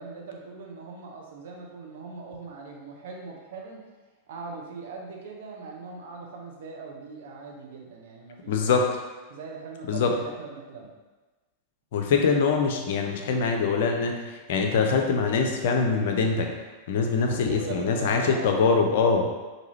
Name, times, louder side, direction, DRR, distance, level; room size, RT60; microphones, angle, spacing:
voice 1, 0.0-3.8 4.3-8.8 9.3-10.9 17.2-18.5, right 4 dB, 55° right, -1 dB, 0.7 m, -40 dB
voice 2, 8.5-8.9 9.9-10.1 11.9-16.5 16.9-19.3, left 5 dB, 55° left, 3 dB, 0.5 m, -23 dB
4.7 x 2.6 x 3.0 m, 1.2 s
figure-of-eight pair, 90°, 0 cm